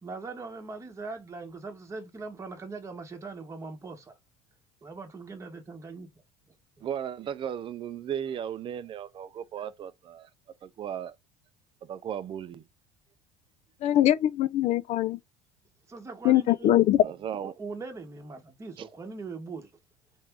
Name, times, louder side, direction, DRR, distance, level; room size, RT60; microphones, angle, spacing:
voice 1, 0.0-4.1 4.8-6.1 6.5-6.8 15.9-17.1 17.6-19.7, right 3 dB, 20° right, 1.0 m, -41 dB
voice 2, 6.8-10.3 10.6-11.1 11.8-12.7 17.0-17.5 18.8-18.9, right 9 dB, 35° right, 0.4 m, -36 dB
voice 3, 13.8-15.2 16.2-17.0, left 12 dB, 50° left, 0.4 m, -22 dB
3.3 x 2.6 x 3.3 m
supercardioid pair, 95°, 15 cm